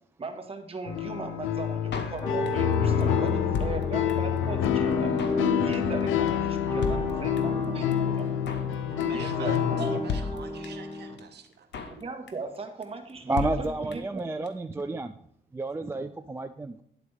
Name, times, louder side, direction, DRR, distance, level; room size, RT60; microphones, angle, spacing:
voice 1, 0.2-5.1 5.5-8.3 9.0-10.0 11.9-14.2, right 3 dB, 30° right, 1.4 m, -38 dB
sound 1, 0.9-10.0, left 10 dB, 80° left, 0.5 m, -27 dB
Drum kit, 1.9-2.7 3.0-3.1 3.3-4.4 4.6-4.7 4.9-5.5 5.7-6.0 6.3-6.4 6.5-6.6 6.8-7.6 7.9-8.0 8.2-8.7 9.0-9.3 9.5-9.6 9.8-9.9 10.1-10.9 11.2-11.3 11.5-12.0 12.3-12.6 12.8-12.9 13.1-13.2 13.4-14.2 14.5-14.6 14.7-14.8, left 5 dB, 60° left, 0.9 m, -34 dB
sound 2, 2.2-11.2, left 1 dB, 20° left, 2.3 m, -33 dB
voice 2, 9.0-11.7, right 6 dB, 60° right, 1.0 m, -44 dB
voice 3, 13.3-15.1 15.5-16.8, right 2 dB, 10° right, 0.3 m, -31 dB
10.0 x 4.0 x 4.9 m
cardioid pair, 90°, 20 cm